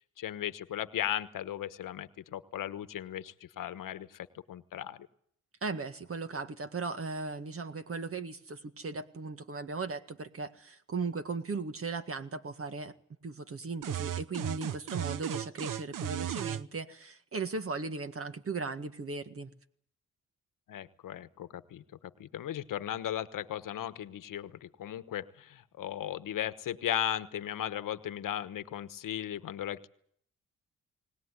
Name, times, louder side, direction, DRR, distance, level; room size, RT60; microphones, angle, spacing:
voice 1, 0.0-5.1 20.7-21.8 22.2-29.9, left 11 dB, 80° left, 13 dB, 1.2 m, -36 dB
voice 2, 5.6-12.9 13.2-19.5, right 4 dB, 45° right, 9 dB, 1.8 m, -37 dB
sound 1, 13.8-16.6, right 11 dB, 75° right, 0.9 m, -35 dB
20.0 x 19.0 x 9.7 m, 0.66 s
cardioid pair, 75°, 32 cm